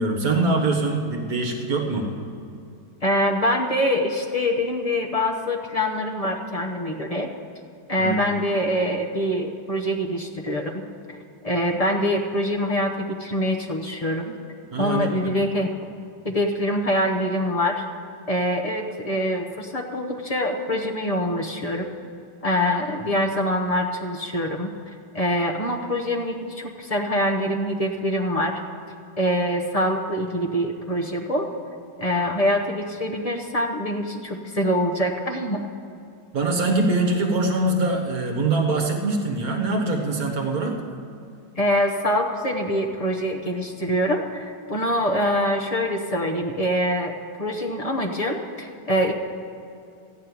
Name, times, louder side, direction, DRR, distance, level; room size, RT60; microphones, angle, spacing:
voice 1, 0.0-2.1 8.0-8.2 14.7-15.3 36.3-40.8, right 2 dB, 55° right, 2 dB, 1.6 m, -23 dB
voice 2, 3.0-7.3 7.9-10.8 11.1-11.2 11.4-14.4 14.8-15.7 16.2-17.8 18.3-21.8 22.4-28.5 29.2-31.5 32.0-35.7 41.6-49.1, equal, 35° left, 1 dB, 0.6 m, -24 dB
13.5 x 6.4 x 9.5 m, 2.5 s
omnidirectional pair, 2.0 m